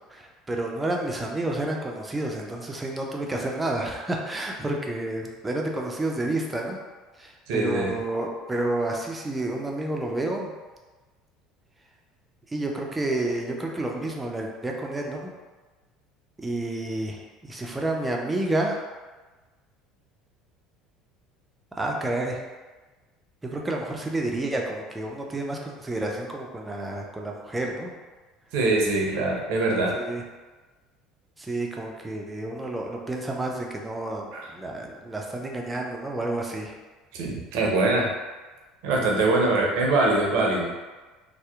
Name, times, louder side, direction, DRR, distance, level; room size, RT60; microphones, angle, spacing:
voice 1, 0.1-6.8 7.2-10.5 12.5-15.3 16.4-18.9 21.7-22.4 23.4-27.9 29.9-30.2 31.4-36.7, right 2 dB, 15° right, 0 dB, 0.4 m, -30 dB
voice 2, 7.5-7.9 28.5-29.9 34.3-34.4 37.1-38.1 38.8-40.7, right 2 dB, 70° right, -1 dB, 0.5 m, -23 dB
2.7 x 2.0 x 2.3 m, 1.3 s
hypercardioid pair, 80°, 0 cm